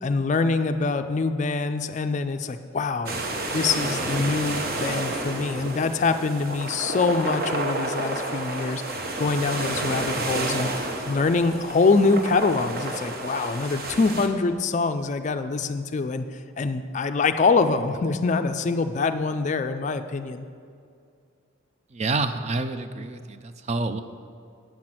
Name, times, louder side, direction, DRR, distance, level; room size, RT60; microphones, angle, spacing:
voice 1, 0.0-3.3 3.5-10.7 11.1-16.3 16.6-20.5, left 4 dB, 35° left, 9 dB, 0.3 m, -24 dB
sound 1, 3.1-14.3, right 2 dB, 50° right, 0.9 m, -30 dB
voice 2, 21.9-24.0, right 3 dB, 35° right, 10 dB, 0.4 m, -28 dB
8.6 x 5.9 x 7.6 m, 2.3 s
head